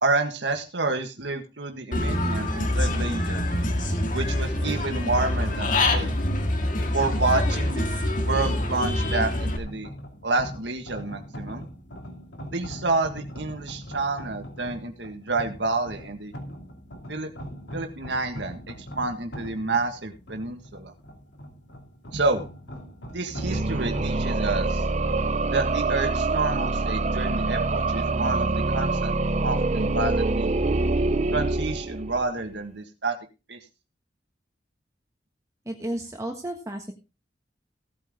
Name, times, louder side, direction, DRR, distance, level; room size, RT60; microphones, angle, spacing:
voice 1, 0.0-3.4 4.1-6.1 6.8-7.8 8.2-9.9 10.2-11.7 12.5-16.3 17.1-17.3 17.7-20.9 22.1-22.4 23.1-24.9 25.5-30.5 31.3-33.2 33.5-33.6, right 3 dB, 80° right, 5 dB, 1.7 m, -29 dB
Human voice / Bird, 1.9-9.6, left 1 dB, 50° left, 2.1 m, -25 dB
sound 1, 9.6-24.3, equal, 90° left, 2.8 m, -41 dB
sound 2, 23.3-32.4, right 3 dB, 40° right, 0.7 m, -25 dB
voice 2, 35.6-36.9, right 1 dB, 20° right, 3 dB, 1.4 m, -32 dB
16.5 x 9.0 x 3.7 m, 0.30 s
head